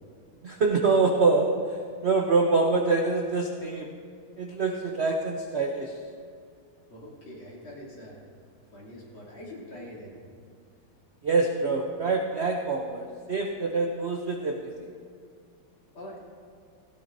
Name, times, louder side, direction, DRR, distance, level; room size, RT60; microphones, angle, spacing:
voice 1, 0.4-1.5 2.0-3.9 4.4-6.0 11.2-14.7, right 3 dB, 70° right, 2 dB, 0.6 m, -25 dB
voice 2, 6.9-8.2 8.7-10.2 15.9-16.2, left 1 dB, 75° left, -6 dB, 3.7 m, -43 dB
17.0 x 17.0 x 2.7 m, 2.1 s
omnidirectional pair, 2.2 m